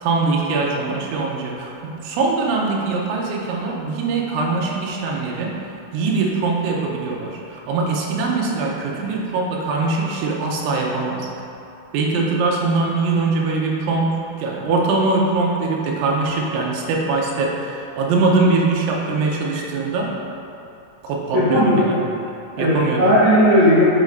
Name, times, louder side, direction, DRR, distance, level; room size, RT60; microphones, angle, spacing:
voice 1, 0.0-5.6 5.9-11.3 11.9-20.2 21.0-22.0 22.6-23.0, right 3 dB, 85° right, -2 dB, 3.1 m, -22 dB
voice 2, 21.3-21.8 22.6-23.9, equal, 55° right, -14 dB, 2.0 m, -15 dB
8.5 x 6.5 x 2.6 m, 2.7 s
omnidirectional pair, 5.5 m